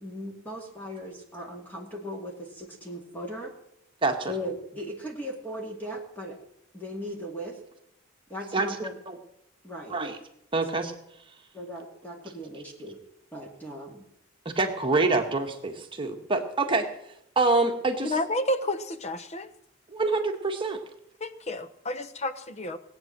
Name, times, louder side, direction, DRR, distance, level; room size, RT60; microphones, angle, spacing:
voice 1, 0.0-3.5 4.3-6.4 6.7-7.6 8.3-8.9 9.6-10.0 11.5-13.0 13.3-14.0, equal, 10° left, 0 dB, 2.3 m, -38 dB
voice 2, 4.0-4.3 8.5-9.2 9.9-10.2 10.5-10.9 14.5-16.9 17.3-18.1 19.9-20.8, right 3 dB, 25° right, 3 dB, 1.7 m, -26 dB
voice 3, 18.0-19.5 21.2-22.8, left 1 dB, 35° left, 12 dB, 1.0 m, -30 dB
19.5 x 9.1 x 7.5 m, 0.76 s
head